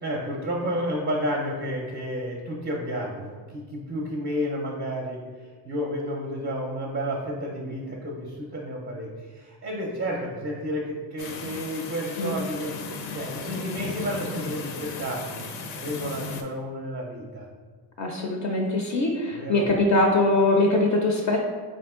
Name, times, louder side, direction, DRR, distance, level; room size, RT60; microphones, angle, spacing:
voice 1, 0.0-12.8 13.1-15.5 15.7-17.5 19.3-19.7, equal, 25° right, -1 dB, 0.4 m, -31 dB
sound 1, 11.2-16.4, left 4 dB, 85° left, 0.6 m, -36 dB
voice 2, 18.0-21.4, left 2 dB, 45° left, 1 dB, 0.4 m, -22 dB
4.1 x 2.5 x 3.6 m, 1.5 s
cardioid pair, 145°, 42 cm